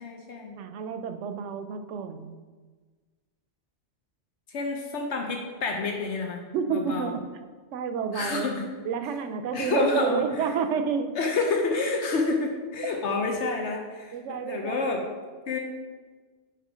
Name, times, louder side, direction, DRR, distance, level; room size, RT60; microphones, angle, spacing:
voice 1, 0.0-0.6 4.5-7.2 8.1-8.7 9.5-10.5 11.1-15.0 15.5-15.6, left 3 dB, 75° left, 2 dB, 1.1 m, -29 dB
voice 2, 0.6-2.4 6.5-7.2 7.7-8.5 8.9-11.1 14.1-15.0, right 6 dB, 90° right, 8 dB, 0.9 m, -29 dB
6.7 x 4.8 x 4.9 m, 1.4 s
omnidirectional pair, 1.2 m